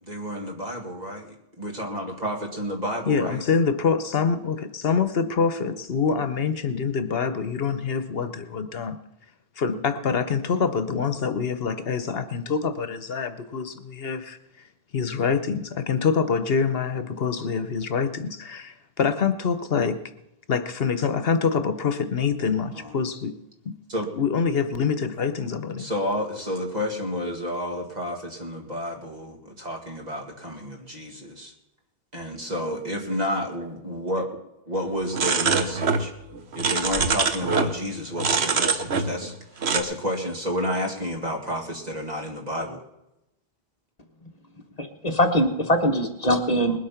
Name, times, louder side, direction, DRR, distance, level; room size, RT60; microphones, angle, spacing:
voice 1, 0.0-3.4 22.7-23.0 23.9-24.1 25.8-31.5 32.1-34.3 34.7-36.1 36.5-42.8, equal, 40° right, 2 dB, 2.2 m, -30 dB
voice 2, 3.1-9.0 9.6-14.4 14.9-20.0 20.5-23.3 23.6-23.8 24.1-25.9, left 5 dB, 70° left, 11 dB, 1.1 m, -25 dB
sound 1, 35.1-36.1 36.3-37.7 38.2-39.3 39.6-39.8, right 4 dB, 90° right, 1.3 m, -24 dB
voice 3, 44.8-46.8, equal, 40° left, 5 dB, 1.2 m, -22 dB
20.5 x 8.5 x 5.8 m, 0.87 s
omnidirectional pair, 1.0 m